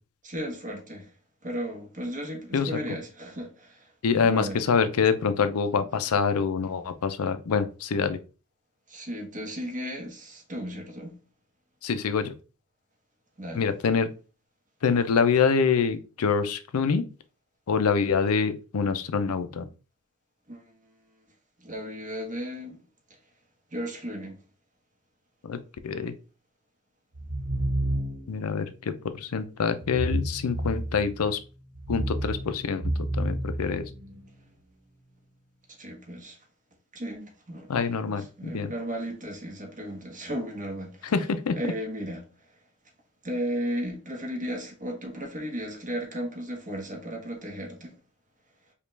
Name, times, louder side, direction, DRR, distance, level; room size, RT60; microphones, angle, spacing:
voice 1, 0.2-1.1 1.4-3.9 4.2-4.6 8.9-11.2 13.4-13.7 20.5-20.9 21.6-22.8 23.7-24.4 35.8-36.4 36.9-37.7 38.1-41.1 41.5-42.2 43.2-48.0, equal, 35° right, 1.2 m, -35 dB
voice 2, 4.0-8.2 11.8-12.3 13.5-14.1 14.8-17.0 17.7-19.6 25.4-25.6 25.8-26.1 28.3-31.4 31.9-32.8 33.1-33.8 37.7-38.7 41.0-41.6, left 5 dB, 70° left, 0.5 m, -25 dB
sound 1, 27.1-28.4 29.8-31.2 31.7-34.2, right 1 dB, 70° right, 1.2 m, -30 dB
5.1 x 2.4 x 3.2 m
head